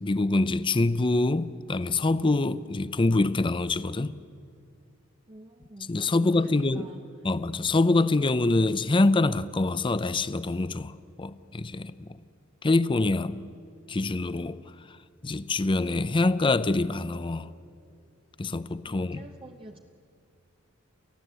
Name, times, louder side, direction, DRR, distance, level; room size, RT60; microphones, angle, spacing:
voice 1, 0.0-4.2 5.9-6.9 7.2-12.2 12.6-13.4 13.9-14.6 14.9-15.0 15.2-17.5 18.4-19.2, left 2 dB, 25° left, 0.5 m, -25 dB
voice 2, 5.3-7.0 18.8-19.8, right 1 dB, 25° right, 0.8 m, -46 dB
29.5 x 15.0 x 8.1 m
head